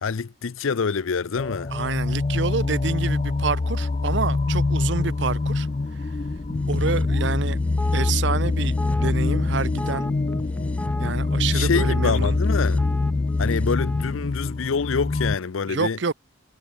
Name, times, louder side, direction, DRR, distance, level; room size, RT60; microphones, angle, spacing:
voice 1, 0.0-1.7 11.5-12.9 13.4-16.0, left 5 dB, 75° left, 0.6 m, -26 dB
sound 1, 1.4-15.4, left 3 dB, 30° left, 0.4 m, -24 dB
voice 2, 1.7-5.7 6.0-6.1 6.7-7.6 7.9-10.1 11.0-12.4 15.7-16.1, right 5 dB, 60° right, 0.7 m, -28 dB
sound 2, 3.3-10.0, equal, 20° right, 2.1 m, -49 dB
sound 3, 6.5-14.2, equal, 5° left, 1.5 m, -36 dB
head